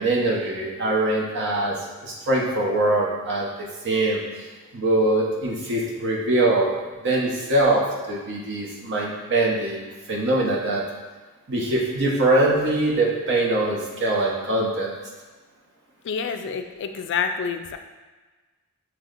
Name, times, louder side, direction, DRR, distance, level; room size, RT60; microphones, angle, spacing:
voice 1, 0.0-1.7 2.0-4.2 4.7-6.8 7.0-9.8 10.1-10.8 11.5-14.9, right 2 dB, 55° right, -2 dB, 0.9 m, -23 dB
voice 2, 16.0-17.8, left 6 dB, 55° left, 7 dB, 0.3 m, -28 dB
6.9 x 3.0 x 2.5 m, 1.3 s
head